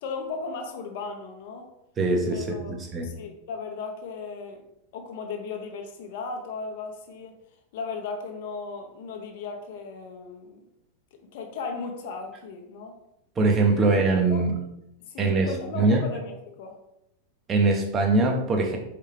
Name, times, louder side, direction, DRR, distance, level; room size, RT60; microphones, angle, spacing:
voice 1, 0.0-1.7 2.3-2.7 3.0-4.6 4.9-7.4 7.7-10.7 11.1-13.0 13.7-14.0 14.3-14.4 15.0-16.8, left 4 dB, 50° left, 4 dB, 0.7 m, -36 dB
voice 2, 2.0-3.1 13.4-14.5 15.2-15.5 15.7-16.0 17.5-18.8, right 3 dB, 25° right, 2 dB, 0.8 m, -22 dB
4.5 x 3.4 x 3.2 m, 0.83 s
figure-of-eight pair, 90°, 0 cm